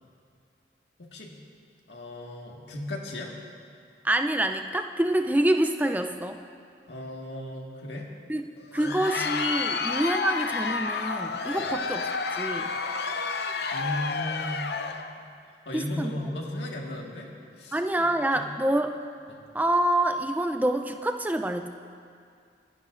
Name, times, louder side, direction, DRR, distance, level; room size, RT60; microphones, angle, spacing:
voice 1, 1.0-1.4 1.9-3.4 6.9-8.1 8.8-9.4 11.6-11.7 13.7-14.7 15.7-17.3 17.6-18.5 19.3-19.4, left 1 dB, 85° left, -1 dB, 1.8 m, -36 dB
voice 2, 4.0-6.4 8.3-8.4 8.7-12.1 12.3-12.7 15.7-16.3 17.7-19.0 19.5-21.7, right 1 dB, 10° right, 6 dB, 0.5 m, -26 dB
Crowd, 8.6-15.1, left 4 dB, 65° left, 0.6 m, -30 dB
27.5 x 11.5 x 2.6 m, 2.3 s
head